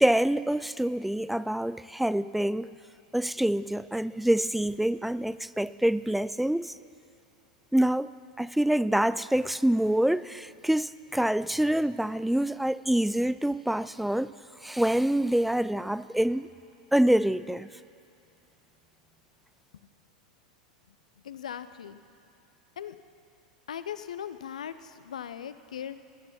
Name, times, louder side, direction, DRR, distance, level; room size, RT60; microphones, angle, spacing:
voice 1, 0.0-2.8 3.1-6.7 7.7-14.3 14.6-16.5 16.9-17.7, right 1 dB, 5° right, 17 dB, 0.3 m, -26 dB
voice 2, 21.2-22.0 22.8-23.0 23.7-26.0, left 9 dB, 75° left, 13 dB, 0.6 m, -39 dB
20.5 x 9.7 x 5.8 m, 2.5 s
figure-of-eight pair, 90°, 4 cm